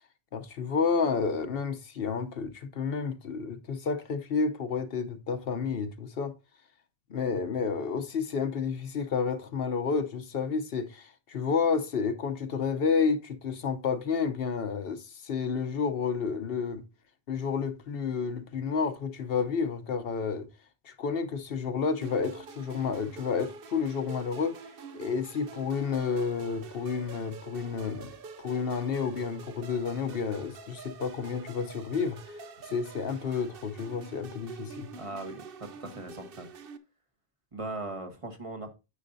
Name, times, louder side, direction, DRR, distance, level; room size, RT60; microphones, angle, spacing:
voice 1, 0.3-6.3 7.1-16.8 17.3-20.5 20.8-24.6 24.9-28.1 28.4-32.2 32.7-34.9, left 5 dB, 65° left, 1.0 m, -30 dB
sound 1, 22.0-36.8, right 5 dB, 65° right, 0.9 m, -46 dB
voice 2, 35.0-36.5 37.5-38.7, right 2 dB, 35° right, 1.3 m, -39 dB
9.8 x 6.8 x 2.6 m
omnidirectional pair, 1.0 m